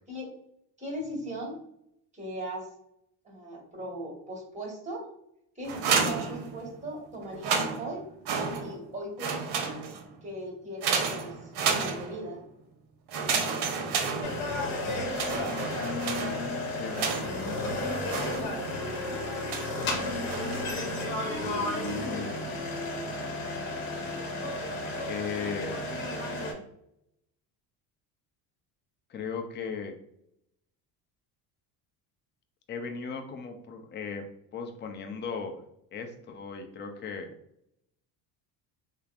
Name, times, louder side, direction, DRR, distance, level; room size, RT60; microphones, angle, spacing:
voice 1, 0.8-1.6 2.1-2.7 3.2-5.1 5.5-8.0 8.6-9.7 10.2-12.4, right 1 dB, 15° right, -2 dB, 1.3 m, -38 dB
sound 1, 5.6-6.9 7.3-8.9 9.2-10.1 10.8-12.4 13.1-14.7 15.1-17.5 18.1-18.8 19.5-19.8 20.3-20.8, right 5 dB, 50° right, 0.7 m, -31 dB
sound 2, 14.2-26.5, left 2 dB, 70° left, 0.9 m, -33 dB
voice 2, 15.8-18.5 21.4-22.3 25.1-25.8 29.1-30.0 32.7-34.2 34.5-35.6 35.9-37.3, left 5 dB, 25° left, 5 dB, 0.4 m, -37 dB
3.3 x 2.0 x 2.4 m, 0.75 s
supercardioid pair, 75°, 49 cm